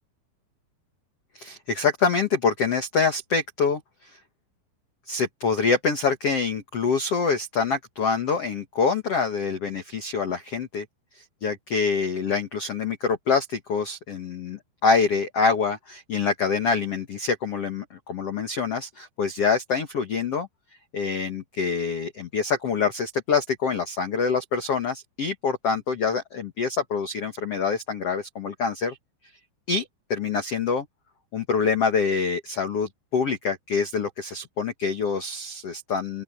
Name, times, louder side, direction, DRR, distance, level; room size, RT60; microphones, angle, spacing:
voice 1, 1.3-4.2 5.1-10.8 11.1-20.5 20.9-29.0 29.7-30.8 31.3-36.2, left 5 dB, 55° left, 1.7 m, -25 dB
open air
omnidirectional pair, 5.2 m